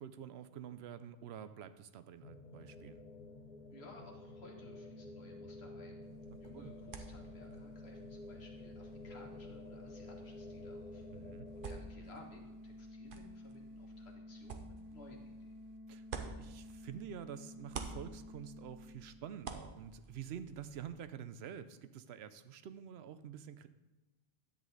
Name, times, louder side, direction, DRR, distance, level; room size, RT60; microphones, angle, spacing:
voice 1, 0.0-3.0 6.5-6.7 11.1-11.5 15.9-23.7, right 9 dB, 80° right, 12 dB, 0.8 m, -48 dB
sound 1, 2.2-11.8, left 2 dB, 45° left, 0.8 m, -52 dB
sound 2, 2.3-19.8, left 1 dB, 35° right, 1.2 m, -53 dB
voice 2, 3.7-6.1 6.4-11.2 11.5-15.6, left 2 dB, 75° left, 1 dB, 1.8 m, -58 dB
sound 3, 6.0-17.2 17.5-20.9, right 5 dB, 60° right, 0.9 m, -51 dB
10.5 x 8.1 x 3.9 m, 1.1 s
omnidirectional pair, 1.1 m